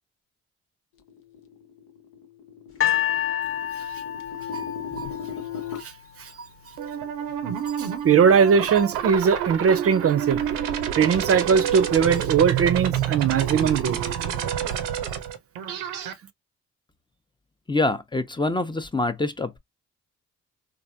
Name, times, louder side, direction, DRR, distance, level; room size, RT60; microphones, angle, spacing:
sound 1, 1.1-5.8, left 8 dB, 75° left, 0.7 m, -38 dB
sound 2, 2.8-6.0 6.8-6.9, left 11 dB, 40° left, 1.0 m, -28 dB
sound 3, 6.8-16.1, right 9 dB, 90° right, 0.6 m, -28 dB
voice 1, 7.8-10.4 10.9-14.0, right 7 dB, 45° right, 0.5 m, -20 dB
voice 2, 17.7-19.6, left 2 dB, 15° left, 0.6 m, -25 dB
3.3 x 2.5 x 2.6 m
hypercardioid pair, 45°, 32 cm